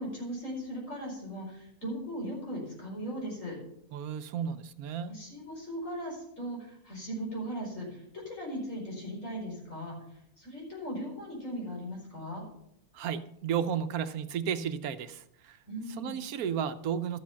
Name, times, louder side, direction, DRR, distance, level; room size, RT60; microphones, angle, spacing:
voice 1, 0.0-3.6 5.1-9.9 10.4-12.4 15.7-16.2, equal, 60° left, -2 dB, 5.1 m, -38 dB
voice 2, 3.9-5.1 12.9-15.6 16.0-17.2, right 8 dB, 80° right, 11 dB, 1.2 m, -33 dB
12.5 x 7.4 x 5.8 m, 0.74 s
omnidirectional pair, 1.5 m